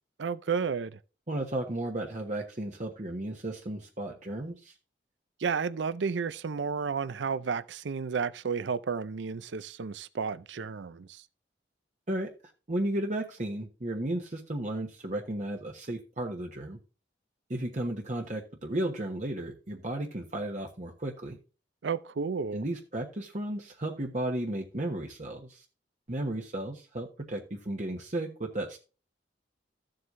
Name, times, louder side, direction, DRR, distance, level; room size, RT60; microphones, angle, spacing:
voice 1, 0.2-1.0 5.4-11.2 21.8-22.6, right 5 dB, 85° right, 0.5 m, -32 dB
voice 2, 1.3-4.7 12.1-12.3 12.7-16.8 17.5-21.4 22.5-25.6 26.1-28.8, right 1 dB, 45° right, 1.2 m, -34 dB
14.5 x 7.7 x 2.6 m
head